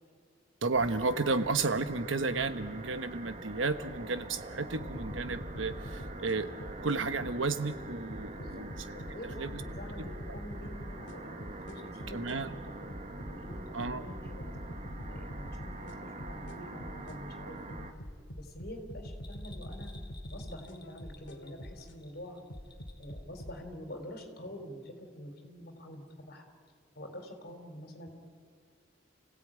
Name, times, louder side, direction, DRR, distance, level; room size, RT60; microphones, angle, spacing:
voice 1, 0.6-6.5 6.8-8.7 9.4-9.6 12.1-12.5 13.7-14.0, right 3 dB, 85° right, 11 dB, 1.2 m, -32 dB
sound 1, 0.7-17.9, right 2 dB, 40° right, 1.5 m, -45 dB
sound 2, 4.7-7.6 8.1-12.4 12.9-17.2 17.7-22.0 22.5-23.6, equal, 70° left, 2.1 m, -44 dB
voice 2, 8.4-17.9 18.4-19.9 20.3-22.4 23.0-26.4 27.0-28.1, equal, 55° left, 5 dB, 3.8 m, -47 dB
Bell, 19.1-23.2 23.5-23.6, left 4 dB, 25° left, 2.4 m, -58 dB
29.5 x 17.0 x 9.0 m, 2.1 s
head